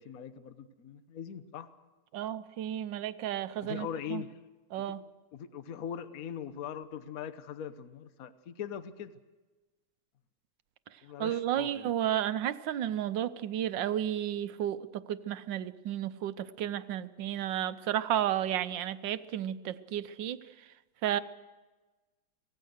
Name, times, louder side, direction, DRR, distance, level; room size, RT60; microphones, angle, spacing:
voice 1, 0.0-1.7 3.6-4.3 5.3-9.1 11.0-11.9, left 8 dB, 55° left, 12 dB, 1.3 m, -41 dB
voice 2, 2.1-4.2 4.7-5.0 11.2-20.4 21.0-21.2, right 11 dB, 75° right, 13 dB, 1.5 m, -32 dB
25.0 x 17.5 x 6.4 m, 1.2 s
omnidirectional pair, 2.0 m